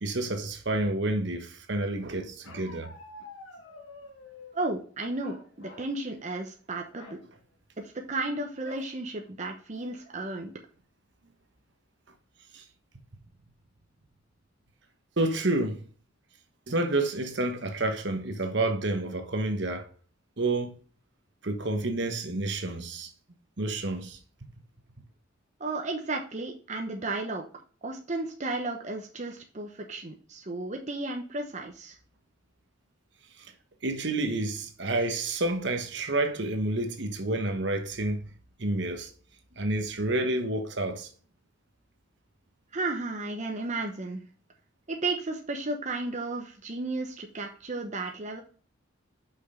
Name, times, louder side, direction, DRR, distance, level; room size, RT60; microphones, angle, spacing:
voice 1, 0.0-2.9 12.5-12.6 15.2-15.9 16.7-19.9 20.4-20.8 21.4-23.1 23.6-24.5 33.4-33.5 33.8-38.3 38.6-39.1 39.6-41.1, right 2 dB, 60° right, 1.2 m, -29 dB
Bark, 2.4-4.6 5.2-6.0 6.3-6.5 6.9-7.2 8.6-8.9 9.5-9.6 9.9-10.3, left 2 dB, 85° left, 1.7 m, -48 dB
voice 2, 4.5-7.2 7.8-10.5 25.6-27.4 27.8-31.9 42.7-44.2 44.9-48.4, right 2 dB, 35° right, 0.9 m, -33 dB
6.2 x 5.7 x 5.0 m
head